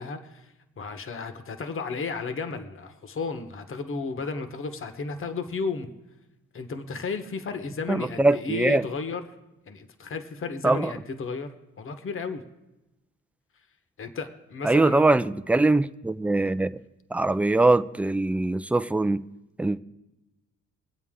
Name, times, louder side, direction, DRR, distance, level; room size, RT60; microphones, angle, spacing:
voice 1, 0.0-5.9 6.5-9.4 9.7-12.4 14.0-15.1, left 4 dB, 45° left, 1.3 m, -33 dB
voice 2, 7.9-8.8 10.6-10.9 14.6-16.7 17.1-19.2 19.6-19.8, right 2 dB, 5° right, 0.4 m, -22 dB
23.0 x 8.3 x 3.7 m
cardioid pair, 90°, 30 cm